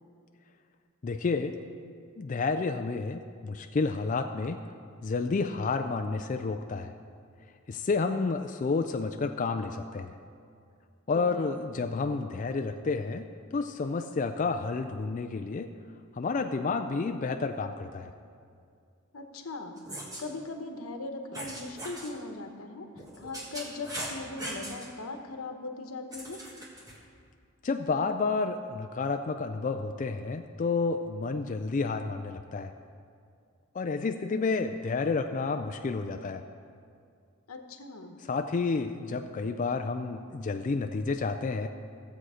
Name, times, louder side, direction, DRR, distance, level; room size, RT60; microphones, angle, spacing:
voice 1, 1.0-1.6 2.2-4.6 5.0-6.9 7.7-10.1 11.1-13.2 13.5-15.7 16.1-18.1 27.6-32.7 33.7-36.4 38.2-41.7, left 4 dB, 35° left, 6 dB, 0.3 m, -30 dB
voice 2, 11.1-11.6 19.1-22.9 23.2-26.4 37.5-38.2, left 3 dB, 80° left, 5 dB, 1.0 m, -40 dB
sound 1, 19.8-20.2 21.3-22.1 22.9-24.9 26.1-27.0, right 1 dB, 15° right, 1.6 m, -39 dB
15.0 x 7.7 x 4.9 m, 2.3 s
head